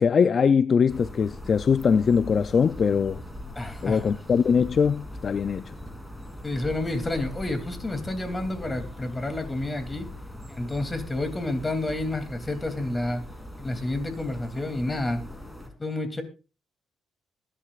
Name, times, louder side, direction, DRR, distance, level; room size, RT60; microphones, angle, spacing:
voice 1, 0.0-3.2 3.8-5.6, left 6 dB, 50° left, 0.5 m, -22 dB
sound 1, 0.9-15.7, left 1 dB, 5° left, 3.2 m, -41 dB
voice 2, 3.6-4.1 6.4-10.1 10.5-13.2 13.6-15.2 15.8-16.2, left 2 dB, 20° left, 2.9 m, -30 dB
21.5 x 11.0 x 2.5 m
cardioid pair, 90°, 0 cm